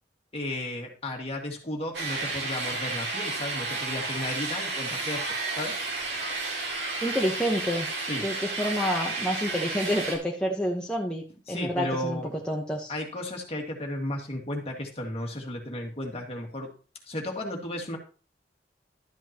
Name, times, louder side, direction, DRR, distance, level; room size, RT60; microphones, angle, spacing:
voice 1, 0.3-5.2 5.6-5.8 8.1-8.3 11.5-12.3 12.9-16.7 17.1-18.0, left 1 dB, 35° left, 1 dB, 2.0 m, -34 dB
sound 1, 1.9-10.2, right 3 dB, 75° right, 2.5 m, -32 dB
voice 2, 7.0-7.9 8.2-12.2 12.5-12.9, equal, 5° left, -2 dB, 1.0 m, -28 dB
12.0 x 8.1 x 2.9 m, 0.37 s
head